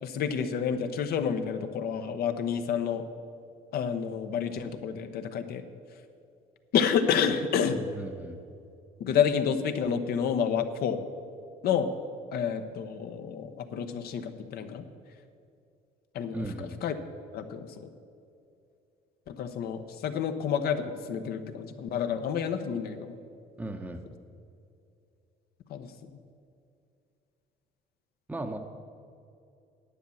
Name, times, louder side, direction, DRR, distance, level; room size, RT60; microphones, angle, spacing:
voice 1, 0.0-3.0 3.7-5.6 6.7-7.8 9.0-11.0 11.6-11.9 12.3-14.9 16.1-16.9 17.3-17.9 19.3-23.2 25.7-25.9, left 7 dB, 65° left, 8 dB, 0.9 m, -29 dB
voice 2, 7.7-8.4 16.3-16.8 23.6-24.0 28.3-28.6, right 2 dB, 10° right, 4 dB, 0.7 m, -36 dB
10.0 x 8.1 x 7.0 m, 2.6 s
cardioid pair, 110°, 17 cm